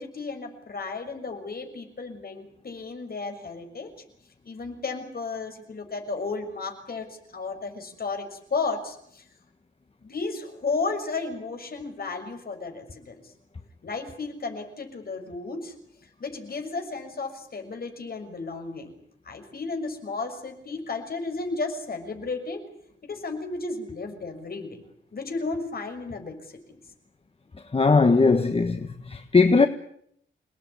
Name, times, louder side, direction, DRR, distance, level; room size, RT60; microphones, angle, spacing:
voice 1, 0.0-3.9 4.4-9.2 10.0-13.2 13.8-15.7 16.2-18.9 19.2-22.6 23.0-24.8 25.1-26.8, left 3 dB, 50° left, 6.5 m, -33 dB
voice 2, 27.7-29.7, left 4 dB, 30° left, 1.5 m, -19 dB
29.5 x 19.0 x 9.8 m
wide cardioid pair, 120°, 20 cm